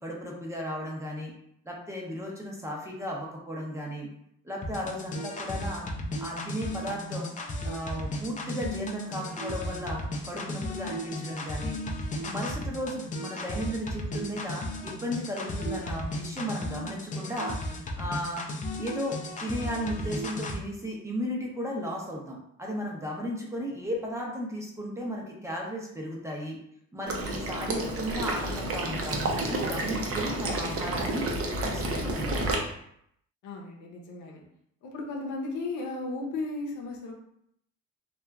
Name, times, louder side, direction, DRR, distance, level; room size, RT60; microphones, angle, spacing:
voice 1, 0.0-1.3 1.6-4.1 4.4-5.9 6.2-7.3 7.6-11.8 12.2-18.4 18.8-26.6 26.9-31.3 31.6-32.5, equal, 10° right, -2 dB, 0.7 m, -35 dB
sound 1, 4.6-20.6, left 1 dB, 25° left, 0.4 m, -35 dB
Water / Liquid, 27.1-32.5, right 2 dB, 50° right, 0.6 m, -30 dB
voice 2, 33.4-34.4 34.8-37.1, left 3 dB, 90° left, 0 dB, 0.7 m, -35 dB
2.8 x 2.3 x 2.3 m, 0.72 s
cardioid pair, 90°, 30 cm